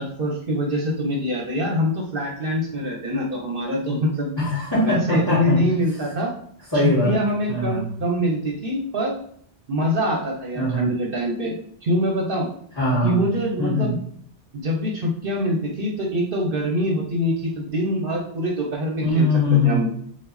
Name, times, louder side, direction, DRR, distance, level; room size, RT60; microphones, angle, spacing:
voice 1, 0.0-4.3 4.8-6.3 7.0-9.2 9.7-11.5 11.8-12.5 13.0-14.0 14.5-19.3 19.6-19.9, equal, 55° right, 0 dB, 0.9 m, -24 dB
voice 2, 4.4-5.6 6.7-7.1 7.5-7.8 10.5-10.9 12.7-13.2 13.6-13.9 19.0-19.8, left 2 dB, 20° left, -11 dB, 2.0 m, -21 dB
4.6 x 2.4 x 4.0 m, 0.63 s
omnidirectional pair, 1.2 m